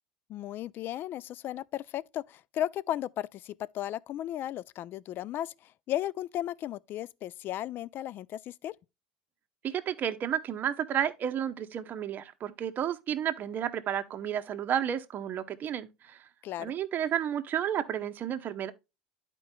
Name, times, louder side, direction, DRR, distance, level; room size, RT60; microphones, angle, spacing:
voice 1, 0.3-8.7 16.4-16.7, left 12 dB, 45° left, 0.3 m, -35 dB
voice 2, 9.6-16.2 16.6-18.7, right 9 dB, 40° right, 0.8 m, -32 dB
12.5 x 4.5 x 2.2 m
hypercardioid pair, 80°, 5 cm